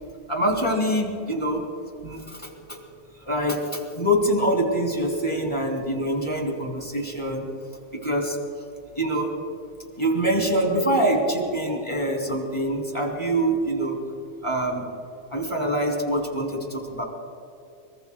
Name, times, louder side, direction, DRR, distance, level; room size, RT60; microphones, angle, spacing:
voice 1, 0.3-1.6 2.0-2.8 3.2-7.4 7.9-8.4 9.0-9.3 10.0-14.0 14.4-14.9 15.3-17.0, right 1 dB, 10° left, -1 dB, 2.4 m, -25 dB
23.5 x 23.5 x 2.3 m, 2.5 s
omnidirectional pair, 3.4 m